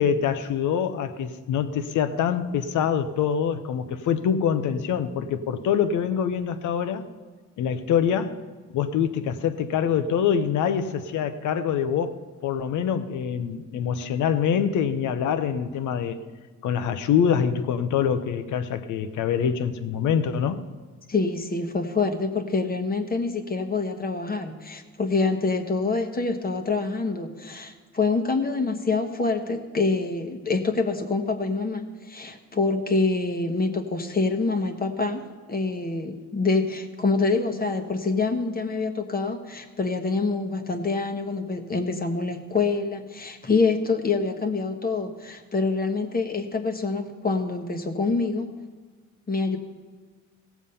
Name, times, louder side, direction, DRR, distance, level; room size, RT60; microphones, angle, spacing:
voice 1, 0.0-7.1 7.6-8.4 8.7-16.2 16.6-20.6, left 8 dB, 75° left, 0.8 m, -25 dB
voice 2, 21.1-35.2 35.5-48.5 49.3-49.6, left 3 dB, 30° left, 1.1 m, -26 dB
16.5 x 7.2 x 5.5 m
cardioid pair, 90°, 30 cm